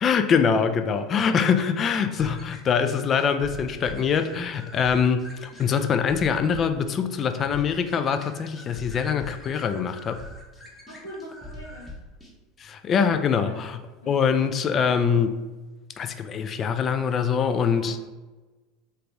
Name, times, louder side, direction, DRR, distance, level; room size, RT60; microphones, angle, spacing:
voice 1, 0.0-10.2 12.6-13.7 14.1-15.4 16.0-18.0, left 6 dB, 40° left, 8 dB, 0.3 m, -24 dB
sound 1, 2.2-12.3, left 1 dB, 15° left, 0.9 m, -43 dB
voice 2, 10.9-11.9 13.4-13.6 14.0-14.4 17.7-18.0, equal, 85° left, -7 dB, 0.7 m, -42 dB
3.2 x 2.4 x 3.3 m, 1.2 s
hypercardioid pair, 75°, 0 cm